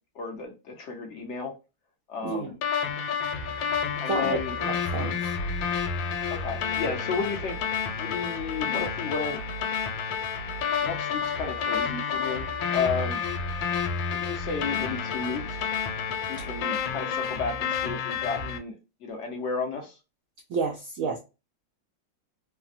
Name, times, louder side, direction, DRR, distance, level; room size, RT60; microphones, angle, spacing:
voice 1, 0.1-1.5 2.1-2.6 4.0-4.6 6.3-7.7 8.0-9.4 10.8-13.2 14.1-15.7 16.3-18.7 19.0-20.0, left 5 dB, 70° left, 0.7 m, -33 dB
sound 1, 2.6-18.6, left 6 dB, 90° left, 1.3 m, -30 dB
voice 2, 4.1-5.1 16.4-16.5 20.5-21.2, right 4 dB, 90° right, 0.7 m, -30 dB
3.2 x 2.1 x 2.5 m
omnidirectional pair, 2.0 m